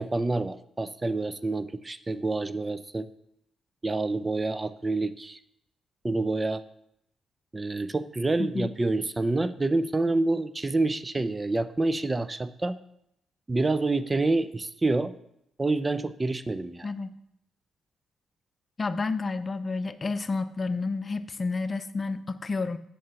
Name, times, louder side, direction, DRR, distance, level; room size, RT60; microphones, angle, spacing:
voice 1, 0.0-3.1 3.8-5.4 6.0-6.6 7.5-12.8 13.5-15.1 15.6-16.9, right 2 dB, 25° right, 13 dB, 0.6 m, -27 dB
voice 2, 16.8-17.1 18.8-22.8, left 3 dB, 35° left, 14 dB, 0.7 m, -30 dB
13.5 x 8.5 x 2.9 m, 0.76 s
hypercardioid pair, 40°, 0 cm